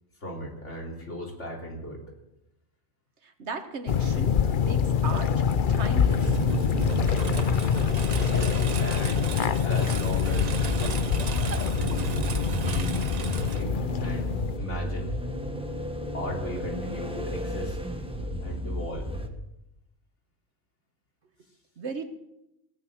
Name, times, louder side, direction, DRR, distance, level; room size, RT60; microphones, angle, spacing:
voice 1, 0.2-2.0 8.0-9.3 9.6-11.0 11.7-13.0 13.5-14.3 14.6-15.2 16.1-17.8 18.4-19.1, left 1 dB, 75° left, -1 dB, 3.7 m, -36 dB
voice 2, 3.2-5.4 5.7-6.4 21.8-22.1, right 4 dB, 65° right, 7 dB, 1.7 m, -37 dB
sound 1, 3.9-14.6, left 7 dB, 50° left, 0.7 m, -25 dB
Engine, 5.5-14.3, right 7 dB, 45° right, 0.6 m, -35 dB
sound 2, 10.1-19.3, equal, 5° right, 1.2 m, -33 dB
17.5 x 9.2 x 7.9 m, 0.91 s
omnidirectional pair, 1.2 m